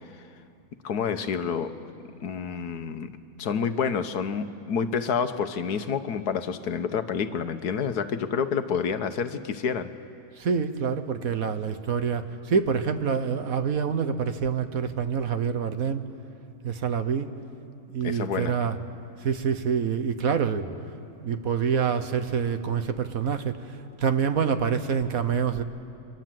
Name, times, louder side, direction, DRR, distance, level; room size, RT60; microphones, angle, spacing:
voice 1, 0.8-1.8 2.2-3.1 3.4-9.9 18.0-18.6, left 6 dB, 70° left, 9 dB, 1.4 m, -28 dB
voice 2, 10.4-16.1 16.6-17.3 17.9-18.8 19.2-20.7 21.2-25.6, right 6 dB, 60° right, 9 dB, 1.4 m, -26 dB
28.5 x 24.5 x 7.6 m, 2.5 s
omnidirectional pair, 1.8 m